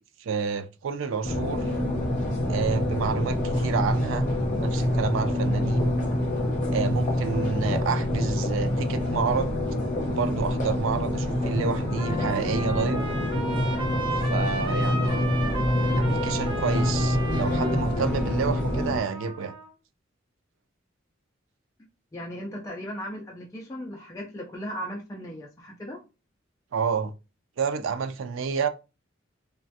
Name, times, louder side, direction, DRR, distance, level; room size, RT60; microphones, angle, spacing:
voice 1, 0.2-1.7 2.5-4.3 4.6-5.9 6.7-9.6 10.1-13.0 14.3-15.3 16.0-19.5 26.7-27.1 27.6-28.7, right 5 dB, 90° right, 0.4 m, -29 dB
sound 1, 1.2-19.0, left 1 dB, 40° left, 0.8 m, -26 dB
Trumpet, 11.2-19.7, right 2 dB, 25° right, 0.7 m, -35 dB
voice 2, 22.1-26.0, equal, 15° left, 0.4 m, -37 dB
3.2 x 2.2 x 2.6 m
head